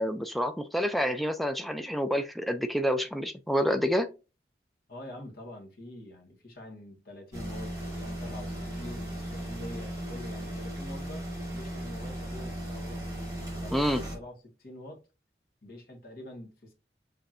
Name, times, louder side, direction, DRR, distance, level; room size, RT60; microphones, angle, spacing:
voice 1, 0.0-4.1 13.7-14.0, equal, ahead, 0.4 m, -28 dB
voice 2, 4.9-11.2 11.5-13.2 13.6-15.0 15.6-16.7, left 1 dB, 55° left, 1.5 m, -46 dB
sound 1, 7.3-14.2, right 1 dB, 20° right, 2.7 m, -37 dB
5.8 x 3.4 x 2.5 m
head